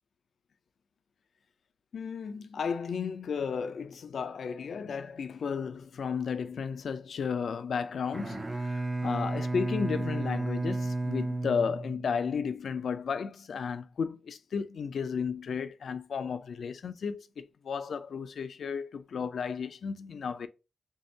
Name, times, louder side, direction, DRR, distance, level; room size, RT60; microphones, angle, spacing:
voice 1, 1.9-20.5, left 6 dB, 85° left, 0.3 m, -33 dB
Bowed string instrument, 8.0-12.4, right 2 dB, 25° right, 0.4 m, -33 dB
3.5 x 2.7 x 3.1 m
wide cardioid pair, 90°, 0 cm